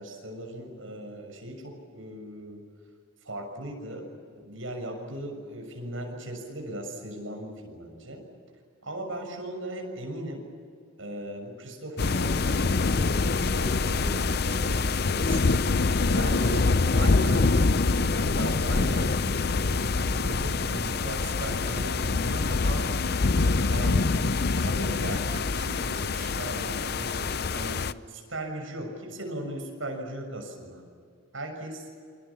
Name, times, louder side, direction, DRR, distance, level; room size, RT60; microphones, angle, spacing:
voice 1, 0.0-2.6 3.2-4.1 4.4-8.2 8.8-10.4 11.0-15.6 16.1-22.8 23.4-24.3 24.5-30.8 31.3-31.9, right 1 dB, 75° right, 3 dB, 6.7 m, -38 dB
sound 1, 12.0-27.9, left 3 dB, 50° left, 0.6 m, -25 dB
29.0 x 26.0 x 7.2 m, 2.3 s
head